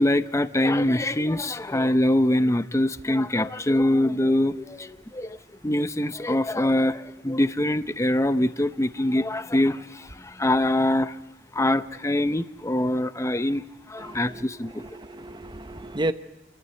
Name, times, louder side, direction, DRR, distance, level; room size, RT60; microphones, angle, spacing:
voice 1, 0.0-5.4 5.6-11.2 11.5-13.6 13.9-14.8, left 1 dB, 15° left, 12 dB, 0.7 m, -24 dB
voice 2, 14.0-16.1, right 1 dB, 25° right, 10 dB, 0.8 m, -33 dB
28.0 x 14.0 x 9.3 m, 1.1 s
head